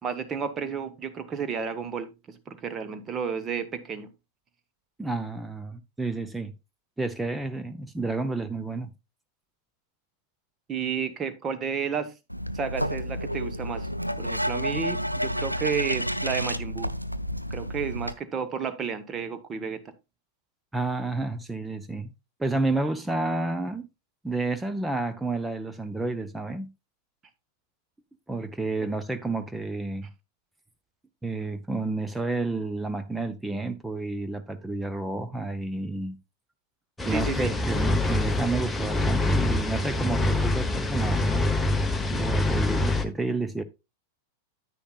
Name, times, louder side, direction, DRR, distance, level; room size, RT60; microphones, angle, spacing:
voice 1, 0.0-4.1 10.7-12.1 12.5-13.9 14.2-16.9 17.5-19.8 37.1-37.5, right 6 dB, 25° right, 1.3 m, -31 dB
voice 2, 5.0-6.5 7.0-8.9 20.7-22.1 22.4-23.9 24.2-26.7 28.3-30.1 31.2-36.2 37.0-41.5 42.1-43.6, right 2 dB, 5° right, 0.6 m, -30 dB
sound 1, 12.3-18.1, equal, 90° right, 0.5 m, -30 dB
sound 2, 37.0-43.1, left 2 dB, 10° left, 1.0 m, -25 dB
9.9 x 9.2 x 2.4 m
figure-of-eight pair, 90°, 0 cm